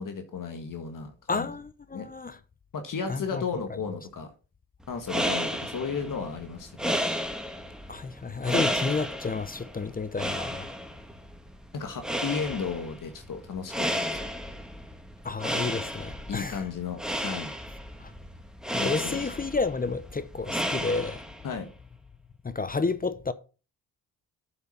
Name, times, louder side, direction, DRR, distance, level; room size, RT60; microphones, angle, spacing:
voice 1, 0.0-1.5 1.9-2.1 2.7-4.3 4.9-7.0 11.7-14.3 16.3-17.5 18.8-19.3 21.4-21.7, left 5 dB, 60° left, 1.6 m, -34 dB
voice 2, 1.3-2.4 3.1-3.4 7.9-10.7 15.2-16.6 18.7-21.2 22.4-23.3, left 4 dB, 25° left, 0.7 m, -30 dB
sound 1, 4.9-21.5, equal, ahead, 1.7 m, -33 dB
7.8 x 5.9 x 5.5 m
cardioid pair, 70°, 37 cm